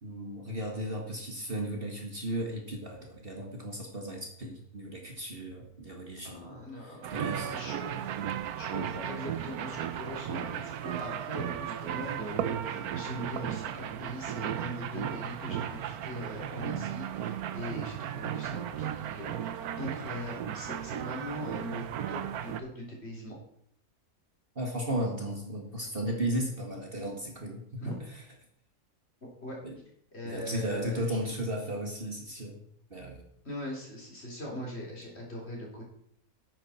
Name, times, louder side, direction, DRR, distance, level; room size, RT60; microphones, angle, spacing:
voice 1, 0.0-7.6 24.6-27.6 29.6-29.8 30.2-32.6 32.9-33.2, right 1 dB, 35° right, 1 dB, 1.9 m, -35 dB
voice 2, 6.2-7.9 8.6-23.4 27.8-27.9 29.4-29.6 30.1-31.3 33.4-35.8, left 1 dB, 40° left, -2 dB, 3.9 m, -41 dB
sound 1, 7.0-22.6, right 9 dB, 75° right, 1.2 m, -35 dB
12.0 x 9.0 x 4.4 m, 0.69 s
omnidirectional pair, 1.6 m